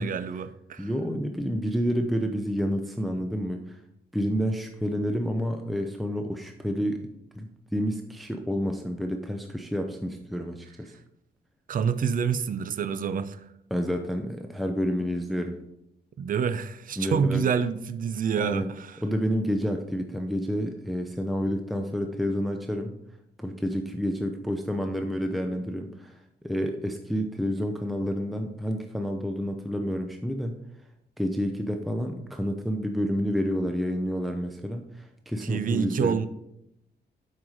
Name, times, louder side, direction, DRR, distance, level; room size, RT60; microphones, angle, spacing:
voice 1, 0.0-0.9 11.7-13.4 16.2-19.0 35.4-36.3, right 7 dB, 50° right, 0.5 m, -27 dB
voice 2, 0.8-3.8 4.1-7.1 7.3-10.9 13.7-15.6 17.0-17.4 18.4-18.7 19.0-22.9 23.4-26.2 26.4-30.6 31.2-36.2, equal, ahead, 0.6 m, -29 dB
7.7 x 5.7 x 4.9 m
cardioid pair, 115°, 17 cm